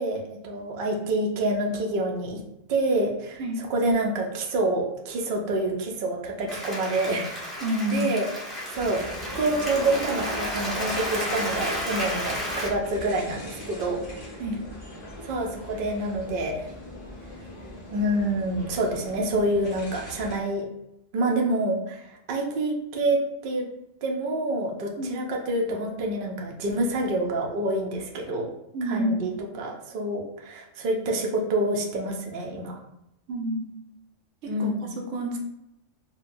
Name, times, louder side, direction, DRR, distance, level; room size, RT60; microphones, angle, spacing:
voice 1, 0.0-2.4 2.7-3.4 3.7-8.3 8.7-9.0 9.4-14.0 15.2-16.6 17.9-20.7 21.1-23.2 23.4-23.6 24.0-28.5 28.9-32.8 34.5-34.9, right 2 dB, 55° right, 0 dB, 0.7 m, -27 dB
Applause, 6.5-12.7, equal, ahead, 0.9 m, -32 dB
voice 2, 7.6-8.2 14.4-14.6 25.0-25.2 28.7-29.4 33.3-33.7 34.4-35.4, equal, 80° right, 1 dB, 1.0 m, -29 dB
sound 1, 8.7-20.4, left 1 dB, 30° left, 1.2 m, -41 dB
4.3 x 2.2 x 2.6 m, 0.85 s
omnidirectional pair, 1.3 m